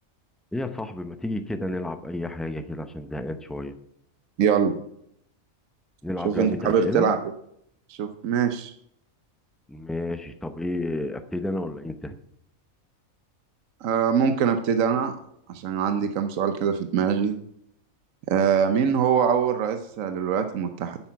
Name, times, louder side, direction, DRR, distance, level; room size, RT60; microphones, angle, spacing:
voice 1, 0.5-3.7 6.0-7.1 9.7-12.2, left 1 dB, ahead, 8 dB, 0.3 m, -31 dB
voice 2, 4.4-4.8 6.2-7.2 7.9-8.7 13.8-15.2 15.5-17.3 18.3-21.0, right 7 dB, 70° right, 8 dB, 1.2 m, -23 dB
9.8 x 8.7 x 5.8 m, 0.72 s
omnidirectional pair, 1.5 m